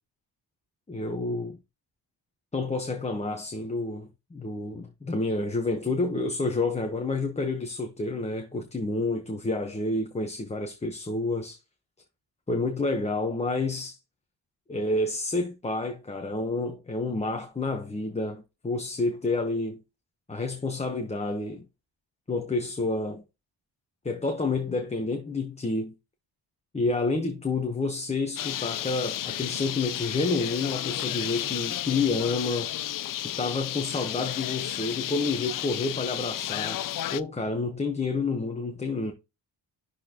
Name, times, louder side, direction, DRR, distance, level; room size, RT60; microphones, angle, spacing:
voice 1, 0.9-1.6 2.5-11.6 12.5-14.0 14.7-19.8 20.3-21.7 22.3-23.2 24.0-25.9 26.7-32.7 33.4-36.8 37.1-39.1, left 3 dB, 15° left, 1.0 m, -29 dB
Bird, 28.4-37.2, left 12 dB, 50° left, 0.5 m, -32 dB
11.5 x 4.1 x 2.9 m
wide cardioid pair, 170°, 44 cm